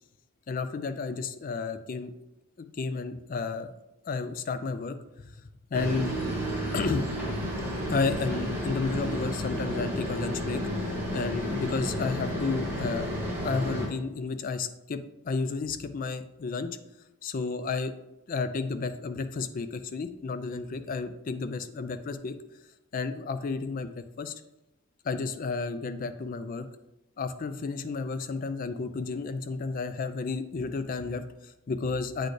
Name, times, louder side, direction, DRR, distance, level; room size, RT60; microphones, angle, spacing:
voice 1, 0.5-2.1 2.6-3.7 4.1-5.0 5.7-6.1 6.7-7.1 7.9-10.6 11.1-16.7 17.2-17.9 18.3-22.4 22.9-24.3 25.0-26.7 27.2-32.3, left 4 dB, 40° left, 10 dB, 0.3 m, -32 dB
sound 1, 5.7-13.9, equal, 10° right, 1.3 m, -32 dB
7.9 x 4.1 x 3.2 m, 0.94 s
head